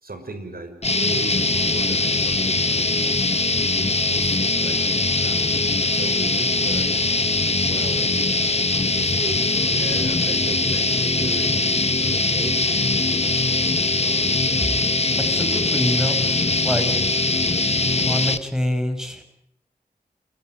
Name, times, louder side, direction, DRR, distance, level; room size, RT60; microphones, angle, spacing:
voice 1, 0.0-3.3 4.1-4.8 5.2-6.9 7.6-8.4 8.9-12.7, right 2 dB, 65° right, 7 dB, 6.2 m, -36 dB
sound 1, 0.8-18.4, left 3 dB, 40° left, 1.6 m, -21 dB
voice 2, 15.3-16.9 18.1-19.2, left 1 dB, 5° right, 6 dB, 7.2 m, -26 dB
29.0 x 19.5 x 9.7 m, 0.75 s
wide cardioid pair, 65°, 17 cm